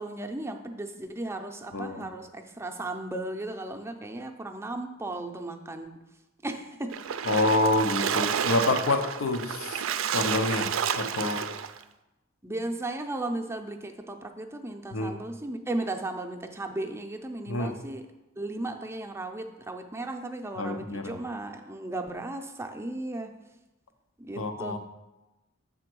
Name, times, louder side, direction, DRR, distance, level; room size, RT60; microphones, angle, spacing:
voice 1, 0.0-5.9 6.4-7.0 12.4-18.1 18.4-23.4 24.2-24.8, right 2 dB, 15° right, 4 dB, 0.5 m, -35 dB
voice 2, 1.7-2.1 7.2-9.8 10.1-11.5 14.9-15.1 17.5-17.7 20.6-21.2 24.4-24.8, left 2 dB, 90° left, 6 dB, 0.8 m, -27 dB
Splash splatter, 6.9-11.8, right 8 dB, 75° right, 0.4 m, -30 dB
7.6 x 3.7 x 6.1 m, 0.99 s
head